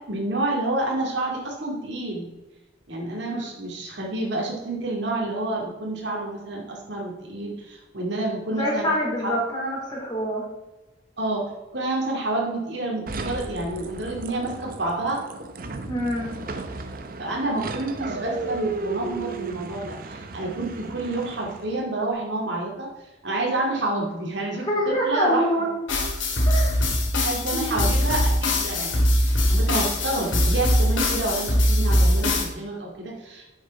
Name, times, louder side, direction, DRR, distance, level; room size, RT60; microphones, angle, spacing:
voice 1, 0.1-2.3 2.9-8.9 9.2-9.3 11.2-11.4 11.7-15.2 17.2-22.9 23.2-25.7 27.2-33.5, right 2 dB, 65° right, -2 dB, 2.2 m, -29 dB
voice 2, 8.5-10.4 15.9-16.3 24.6-25.7 26.4-26.8 27.5-27.7, equal, 20° left, -4 dB, 3.2 m, -26 dB
sound 1, 13.1-21.8, right 3 dB, 45° right, 0.7 m, -34 dB
sound 2, 25.9-32.5, left 1 dB, 90° left, 2.0 m, -21 dB
7.9 x 6.7 x 4.7 m, 1.0 s
head